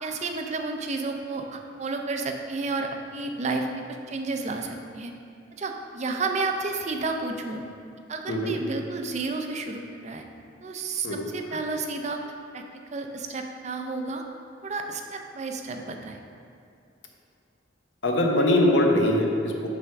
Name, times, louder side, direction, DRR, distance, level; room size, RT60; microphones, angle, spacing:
voice 1, 0.0-5.1 5.6-7.7 8.1-10.2 10.6-12.2 12.5-12.6 12.9-14.2 14.6-16.2, right 3 dB, 40° right, 4 dB, 0.5 m, -31 dB
voice 2, 18.0-19.7, left 1 dB, 75° left, 1 dB, 0.8 m, -22 dB
5.8 x 3.5 x 5.9 m, 2.5 s
head